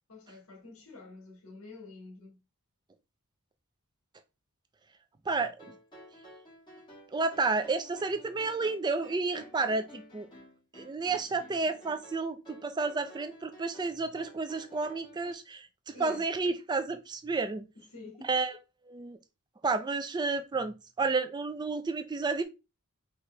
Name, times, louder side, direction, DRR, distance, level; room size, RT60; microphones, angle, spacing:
voice 1, 0.1-2.4 15.9-16.3 17.7-18.3, left 3 dB, 75° left, 1.7 m, -48 dB
voice 2, 5.3-5.7 7.1-10.3 10.7-17.7 18.3-18.5 18.9-19.2 19.6-22.4, right 3 dB, 20° right, 0.3 m, -31 dB
sound 1, 5.6-15.3, equal, 20° left, 1.7 m, -53 dB
4.7 x 2.9 x 3.2 m
head